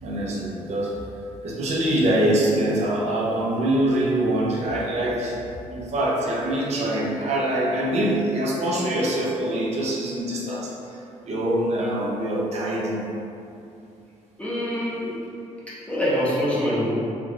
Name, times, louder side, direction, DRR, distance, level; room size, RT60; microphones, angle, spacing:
voice 1, 0.0-1.0 1.4-5.4 5.7-11.0 11.2-13.0, right 1 dB, 60° right, -4 dB, 0.7 m, -24 dB
voice 2, 14.4-15.2 15.7-16.9, equal, 10° left, -9 dB, 0.7 m, -25 dB
3.3 x 3.0 x 2.5 m, 2.6 s
cardioid pair, 110°, 13 cm